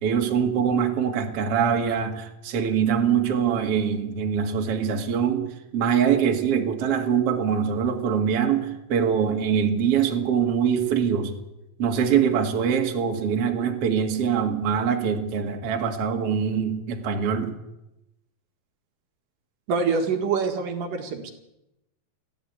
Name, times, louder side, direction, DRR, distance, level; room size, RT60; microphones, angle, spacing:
voice 1, 0.0-11.3 11.8-17.5, right 7 dB, 45° right, 3 dB, 2.6 m, -23 dB
voice 2, 19.7-21.3, right 5 dB, 70° right, 4 dB, 3.4 m, -25 dB
22.5 x 15.0 x 8.2 m, 0.91 s
omnidirectional pair, 4.1 m